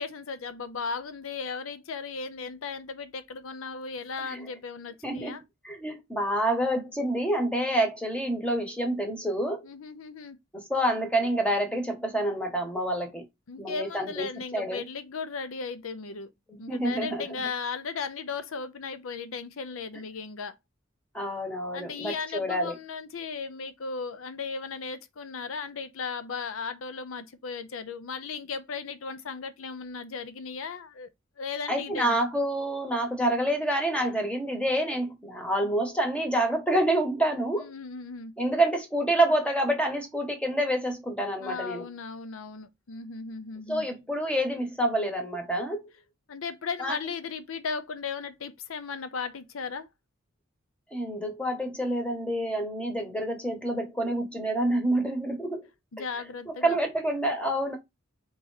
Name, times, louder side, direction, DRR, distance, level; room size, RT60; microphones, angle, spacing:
voice 1, 0.0-5.4 9.6-10.4 13.5-16.3 16.6-20.5 21.7-31.1 31.4-32.2 37.6-38.4 41.4-43.9 46.3-49.9 55.9-56.8, left 5 dB, 85° left, 0.6 m, -36 dB
voice 2, 5.0-5.3 5.6-9.7 10.7-13.2 13.6-14.3 14.5-14.8 16.5-17.2 21.1-22.8 31.7-37.7 38.4-41.8 43.7-45.9 46.8-46.9 50.9-55.6 56.5-57.8, right 1 dB, 5° left, 1.0 m, -27 dB
3.9 x 2.9 x 4.0 m
head